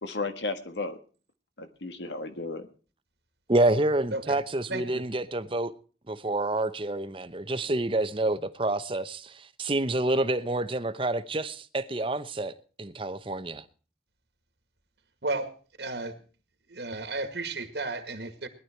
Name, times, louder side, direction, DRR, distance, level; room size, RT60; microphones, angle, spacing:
voice 1, 0.0-1.0 1.6-2.7, left 3 dB, 75° left, 1.6 m, -34 dB
voice 2, 3.5-5.7 6.1-12.5 12.8-13.6, right 2 dB, 30° right, 0.9 m, -28 dB
voice 3, 4.7-5.0 15.2-15.5 15.8-16.2 16.7-18.5, right 2 dB, 70° right, 2.0 m, -33 dB
19.0 x 11.5 x 4.5 m
head